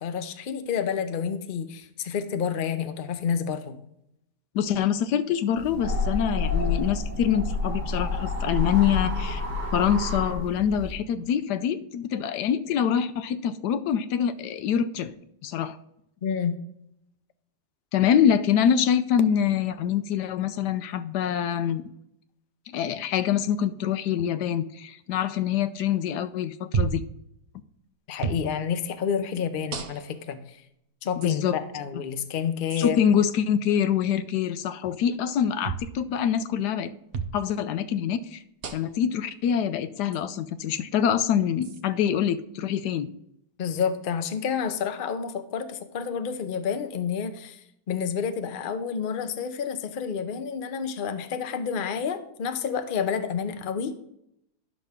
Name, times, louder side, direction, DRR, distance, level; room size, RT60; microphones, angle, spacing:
voice 1, 0.0-3.8 16.2-16.5 28.1-30.6 31.0-33.0 43.6-47.6 47.9-54.0, left 7 dB, 90° left, 8 dB, 0.4 m, -29 dB
voice 2, 4.5-9.4 9.7-15.1 15.4-15.8 17.9-21.8 22.7-27.0 31.2-31.6 32.8-36.9 37.3-38.4 38.7-43.1, left 8 dB, 70° left, 12 dB, 1.1 m, -25 dB
sound 1, 5.6-11.0, left 3 dB, 40° right, 3.3 m, -29 dB
sound 2, 26.7-27.1 28.2-28.5 29.7-30.2 31.2-31.3 32.7-32.9 35.6-35.9 37.1-37.4 38.6-39.0 40.1-40.2 41.6-41.8, right 5 dB, 85° right, 0.5 m, -30 dB
10.5 x 6.2 x 3.6 m, 0.77 s
omnidirectional pair, 2.0 m